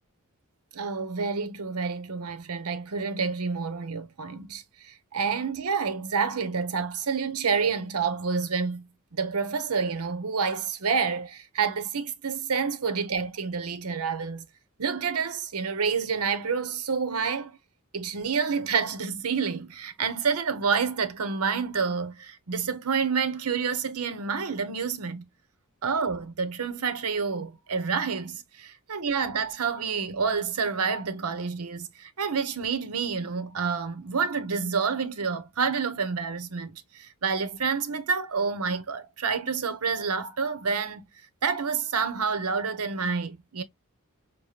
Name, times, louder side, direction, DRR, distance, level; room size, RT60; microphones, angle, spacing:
voice 1, 0.7-14.5 14.8-17.6 17.9-25.2 25.8-41.0 41.4-43.6, right 5 dB, 80° right, 0.8 m, -28 dB
6.5 x 2.2 x 2.8 m
head